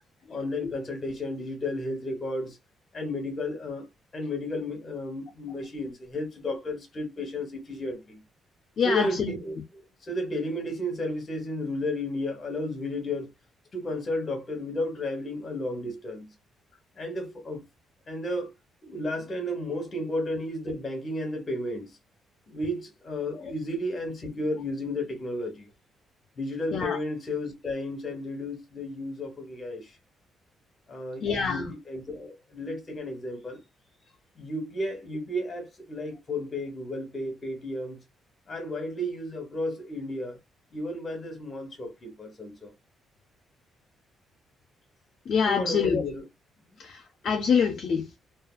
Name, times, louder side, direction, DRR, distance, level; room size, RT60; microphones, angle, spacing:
voice 1, 0.3-2.6 2.9-3.8 4.1-8.2 8.8-9.6 10.0-13.3 13.7-16.3 17.0-17.6 18.1-18.5 18.8-21.9 22.5-25.7 26.4-29.9 30.9-33.6 34.4-38.0 38.5-40.4 40.7-42.7 45.5-46.2, left 1 dB, 40° left, 1.1 m, -33 dB
voice 2, 8.8-9.4 23.3-23.5 26.7-27.0 31.2-31.7 45.3-46.0 46.8-48.2, left 6 dB, 60° left, 0.4 m, -26 dB
2.7 x 2.3 x 2.3 m
cardioid pair, 90°, 0 cm